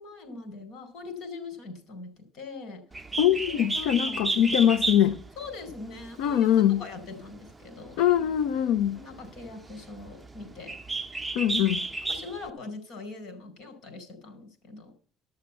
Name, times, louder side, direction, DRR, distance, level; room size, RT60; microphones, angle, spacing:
voice 1, 0.0-2.8 3.4-4.3 5.4-8.3 8.8-10.8 12.1-14.9, left 3 dB, 65° left, 5.0 m, -42 dB
Bird, 2.9-12.5, right 2 dB, 10° right, 0.8 m, -34 dB
voice 2, 3.2-5.2 6.2-6.8 8.0-9.0 11.3-11.8, left 10 dB, 80° left, 0.8 m, -22 dB
13.0 x 6.6 x 8.3 m
cardioid pair, 110°, 0 cm